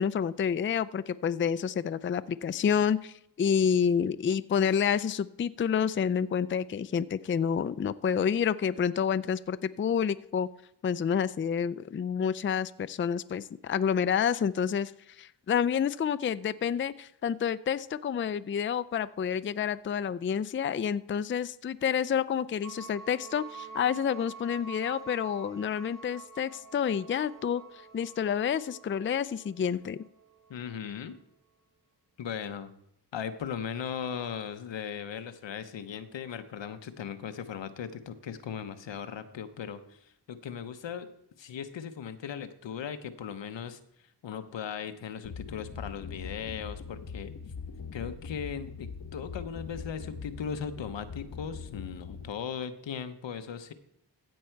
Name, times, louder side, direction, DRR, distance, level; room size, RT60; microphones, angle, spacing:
voice 1, 0.0-10.5 10.8-14.9 15.2-27.6 27.9-30.0, left 7 dB, 30° left, 16 dB, 0.4 m, -29 dB
sound 1, 22.6-30.8, right 5 dB, 45° right, 1.3 m, -48 dB
voice 2, 30.5-31.2 32.2-32.7 33.1-41.1 41.4-43.8 44.2-47.3 47.9-53.7, left 7 dB, 80° left, 10 dB, 0.9 m, -38 dB
sound 2, 45.2-52.3, left 5 dB, 50° left, 1.0 m, -42 dB
15.5 x 5.5 x 4.6 m, 0.75 s
cardioid pair, 45°, 43 cm